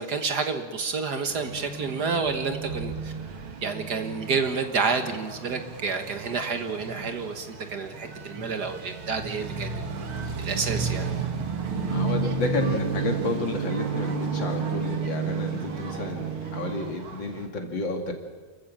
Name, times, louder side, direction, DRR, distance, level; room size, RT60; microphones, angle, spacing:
voice 1, 0.0-3.1 3.6-9.7 10.4-11.1, right 4 dB, 55° right, 7 dB, 1.8 m, -29 dB
sound 1, 1.3-17.5, right 5 dB, 85° right, 2.7 m, -32 dB
voice 2, 11.9-18.1, left 2 dB, 65° left, 4 dB, 3.1 m, -31 dB
29.0 x 14.0 x 7.5 m, 1.4 s
omnidirectional pair, 2.3 m